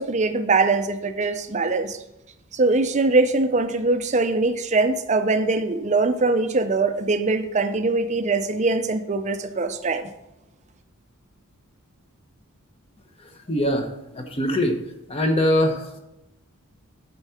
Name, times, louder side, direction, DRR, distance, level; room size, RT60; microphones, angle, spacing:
voice 1, 0.0-2.0 2.5-10.1, right 3 dB, 30° right, 9 dB, 0.5 m, -22 dB
voice 2, 13.2-14.8 15.1-16.0, left 1 dB, 25° left, 5 dB, 0.9 m, -23 dB
8.1 x 4.5 x 5.6 m, 0.91 s
head